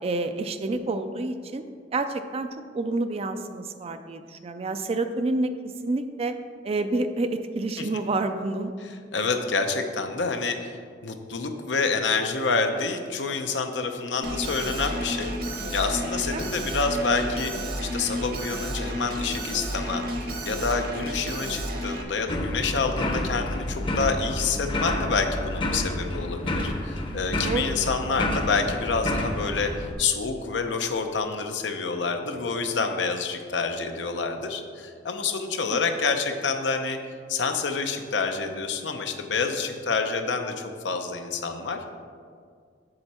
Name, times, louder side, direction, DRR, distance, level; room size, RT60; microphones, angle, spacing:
voice 1, 0.0-1.6 1.9-2.5 2.7-6.4 6.6-8.8 16.3-16.5 27.4-27.7 35.4-35.8, right 2 dB, 35° right, 8 dB, 0.4 m, -29 dB
voice 2, 9.1-15.3 15.7-29.7 30.0-37.0 37.3-41.9, left 4 dB, 85° left, 5 dB, 0.7 m, -28 dB
Alarm, 14.2-22.0, equal, 55° right, 1.0 m, -31 dB
sound 1, 22.3-29.9, left 1 dB, 30° left, 0.7 m, -29 dB
7.8 x 7.0 x 4.3 m, 2.1 s
head